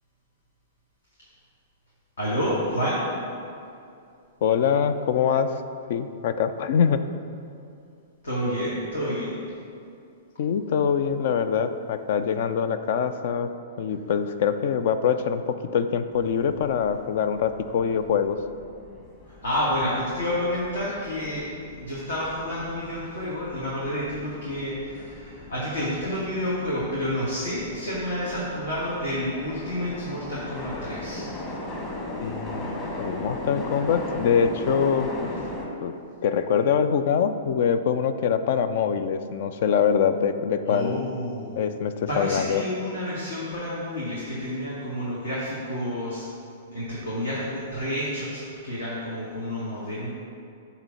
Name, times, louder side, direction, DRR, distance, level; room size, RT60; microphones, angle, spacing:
voice 1, 2.2-3.0 8.2-9.4 19.3-21.5 21.7-31.3 40.6-41.6 42.1-46.2 46.7-50.1, equal, 75° left, -7 dB, 1.7 m, -29 dB
voice 2, 4.4-5.6 5.9-7.0 10.4-13.5 13.8-18.4 32.2-35.3 35.8-35.9 36.2-41.0 41.6-42.6, left 7 dB, 60° left, 11 dB, 0.4 m, -24 dB
sound 1, 16.1-35.7, left 1 dB, 25° left, 1.4 m, -38 dB
8.7 x 3.1 x 5.6 m, 2.5 s
hypercardioid pair, 110°, 0 cm